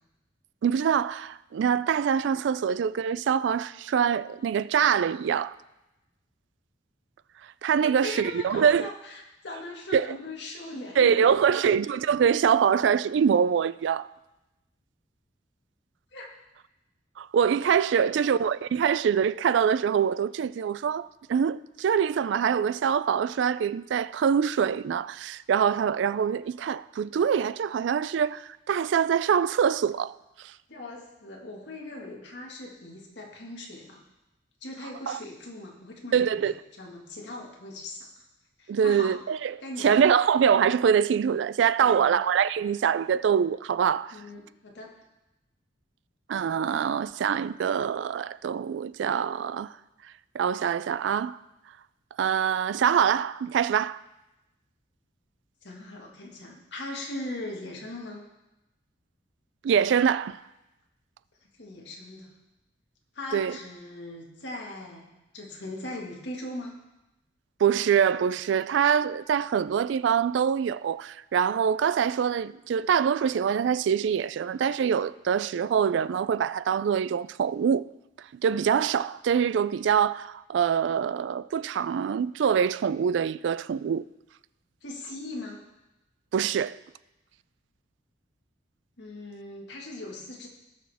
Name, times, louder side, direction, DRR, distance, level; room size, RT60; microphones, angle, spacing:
voice 1, 0.6-5.6 7.6-8.9 9.9-10.1 11.0-14.1 17.2-30.2 35.1-35.2 36.1-36.5 38.7-44.2 46.3-49.7 50.3-51.4 52.2-54.0 59.6-60.4 63.3-63.6 67.6-77.9 78.3-84.0 86.3-86.8, right 7 dB, 75° right, 0.3 m, -24 dB
voice 2, 7.8-11.8 16.1-16.3 17.9-18.3 30.7-34.0 34.6-38.2 38.6-39.2 39.6-40.0 41.8-42.2 44.1-44.9 55.6-58.2 61.6-62.3 63.1-65.1 65.3-66.8 84.8-85.6 89.0-90.5, left 2 dB, 70° left, 1.8 m, -40 dB
18.0 x 6.3 x 3.5 m
head